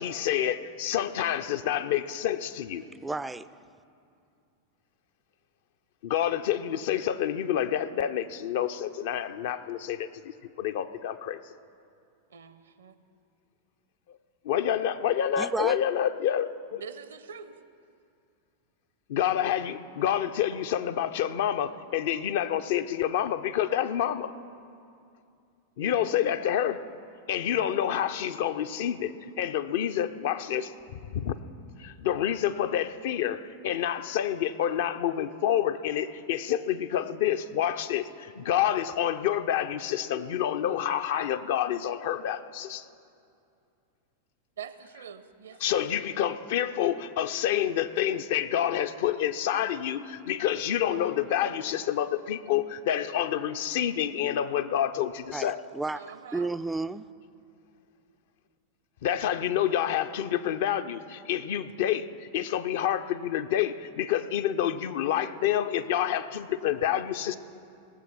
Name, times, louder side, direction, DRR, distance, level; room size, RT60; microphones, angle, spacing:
voice 1, 0.0-2.8 6.0-11.4 14.4-16.8 19.1-24.3 25.8-26.8 27.3-31.3 31.8-42.9 45.6-55.6 59.0-67.4, left 10 dB, 55° left, 10 dB, 0.5 m, -28 dB
voice 2, 3.0-3.5 15.4-15.8 55.3-56.0 56.3-57.1, right 3 dB, 10° right, 14 dB, 0.3 m, -32 dB
voice 3, 12.3-13.0 16.8-17.6 44.6-45.9 55.9-56.5, right 7 dB, 65° right, 13 dB, 0.6 m, -44 dB
19.0 x 7.3 x 5.9 m, 2.5 s
figure-of-eight pair, 90°, 0 cm